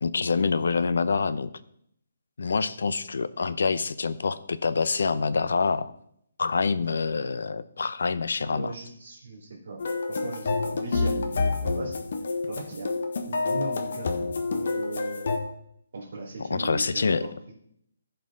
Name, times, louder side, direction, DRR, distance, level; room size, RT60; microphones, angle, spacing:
voice 1, 0.0-1.5 2.4-5.9 6.4-8.7 16.5-17.3, left 4 dB, 70° left, 15 dB, 0.6 m, -26 dB
voice 2, 8.5-9.8 10.1-12.0 12.5-12.9 13.3-15.2 15.9-17.5, right 3 dB, 55° right, -4 dB, 3.0 m, -38 dB
sound 1, 9.8-15.4, left 3 dB, 50° left, 1.2 m, -28 dB
15.0 x 5.5 x 3.9 m, 0.71 s
hypercardioid pair, 175°, 0 cm